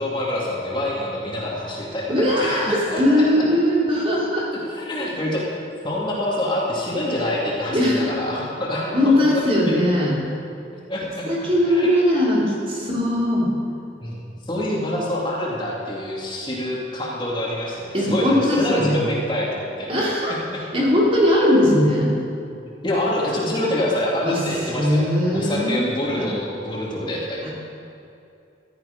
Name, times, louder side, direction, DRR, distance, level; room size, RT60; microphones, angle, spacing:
voice 1, 0.0-3.3 4.7-5.5 5.8-9.7 10.9-11.3 11.7-11.9 14.0-19.9 20.5-20.6 22.8-27.5, left 1 dB, 25° left, -4 dB, 2.3 m, -26 dB
voice 2, 2.1-4.5 5.0-5.2 7.7-8.1 8.9-10.2 11.2-13.5 17.9-19.0 19.9-20.4 20.7-22.1 24.2-24.4 24.8-26.3 27.4-27.5, left 1 dB, 30° right, -5 dB, 3.3 m, -20 dB
14.5 x 12.5 x 5.3 m, 2.7 s
head